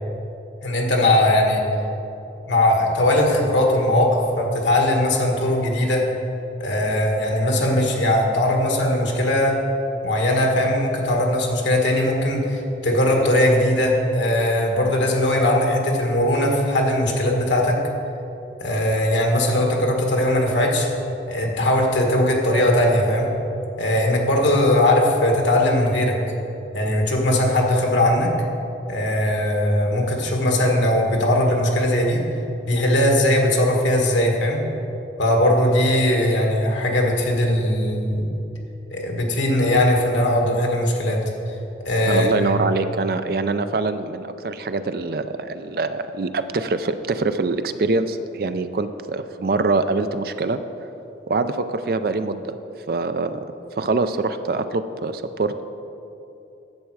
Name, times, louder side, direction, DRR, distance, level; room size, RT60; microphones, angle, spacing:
voice 1, 0.6-1.6 2.5-6.0 6.6-9.5 10.0-17.8 18.6-20.9 21.3-23.3 23.8-26.2 26.7-28.3 28.9-32.2 32.6-34.6 35.2-38.3 38.9-41.2 41.8-42.5, left 1 dB, 85° left, 1 dB, 1.6 m, -19 dB
voice 2, 42.1-50.6 51.3-52.5 52.9-53.3 53.8-55.6, right 3 dB, 55° right, 10 dB, 0.4 m, -24 dB
10.5 x 7.6 x 4.7 m, 2.9 s
head